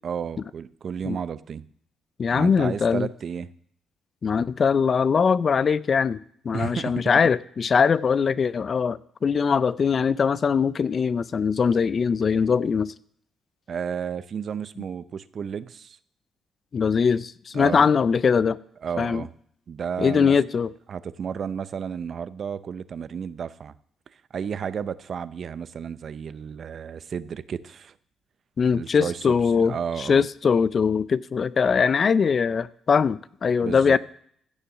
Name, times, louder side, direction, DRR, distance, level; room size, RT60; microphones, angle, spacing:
voice 1, 0.0-1.6 2.3-3.5 6.5-7.0 13.7-16.0 17.5-18.0 18.8-19.3 19.7-20.4 20.9-23.7 24.3-27.9 28.7-29.4 29.6-30.2 33.6-34.0, right 7 dB, 55° right, 16 dB, 0.6 m, -32 dB
voice 2, 2.2-3.1 4.2-6.2 6.4-12.9 16.7-18.6 19.0-19.2 20.0-20.7 28.6-34.0, left 6 dB, 45° left, 18 dB, 0.5 m, -21 dB
15.5 x 6.7 x 6.0 m, 0.65 s
cardioid pair, 90°, 0 cm